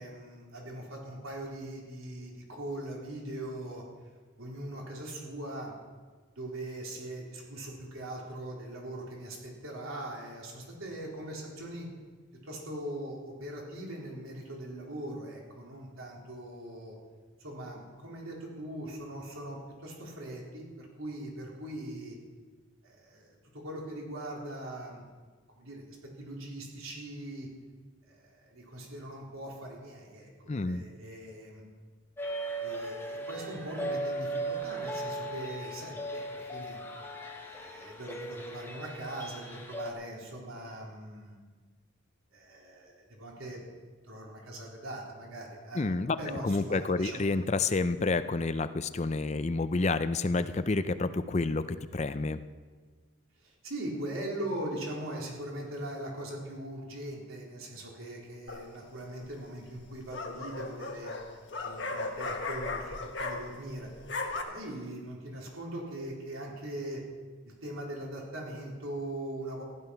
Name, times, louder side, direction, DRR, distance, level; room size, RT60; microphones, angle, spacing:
voice 1, 0.0-3.8 4.4-5.7 6.4-11.9 12.4-17.0 17.4-22.2 22.8-25.1 25.6-27.5 28.1-31.6 32.6-36.8 37.4-41.4 42.3-43.6 44.0-47.3 53.4-61.2 61.6-63.9 64.4-67.0 67.4-69.6, right 1 dB, 85° right, -2 dB, 3.8 m, -41 dB
voice 2, 30.5-30.8 45.8-46.2 46.4-52.4, left 3 dB, 35° left, 12 dB, 0.5 m, -29 dB
sound 1, 32.2-39.9, right 1 dB, 10° left, 1.3 m, -37 dB
sound 2, 58.5-58.9 59.8-63.7 64.0-64.4, left 3 dB, 60° left, 1.5 m, -36 dB
15.0 x 11.0 x 5.8 m, 1.4 s
head